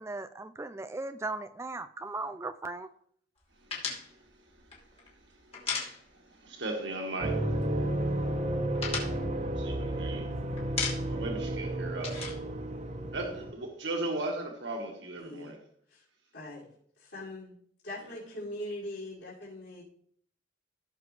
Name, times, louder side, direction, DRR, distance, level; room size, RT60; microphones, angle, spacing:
voice 1, 0.0-2.9, right 2 dB, 15° right, 0.3 m, -37 dB
sound 1, 3.7-6.5 6.7-6.9 7.2-7.9 8.2-10.2 10.6-11.3 11.6-13.4, left 5 dB, 35° left, 2.8 m, -37 dB
voice 2, 5.4-7.6 9.6-10.3 11.1-12.4 13.1-15.6, right 2 dB, 80° right, 1.7 m, -37 dB
sound 2, 7.2-13.5, right 1 dB, 40° right, 1.0 m, -32 dB
voice 3, 15.2-15.5 15.9-16.0 16.3-16.6 17.0-17.5 17.8-19.8, left 1 dB, 70° left, 4.7 m, -41 dB
16.0 x 6.6 x 3.3 m
head